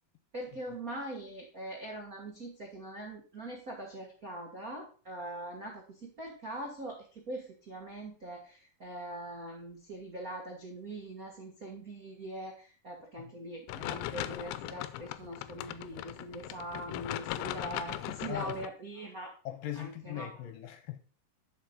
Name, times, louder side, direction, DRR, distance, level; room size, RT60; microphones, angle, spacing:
voice 1, 0.3-19.3 19.7-20.4, right 1 dB, 70° right, 0.8 m, -42 dB
sound 1, 13.7-18.7, left 15 dB, 90° left, 2.6 m, -39 dB
voice 2, 19.5-21.0, left 12 dB, 70° left, 2.4 m, -39 dB
10.5 x 5.2 x 5.2 m
omnidirectional pair, 4.6 m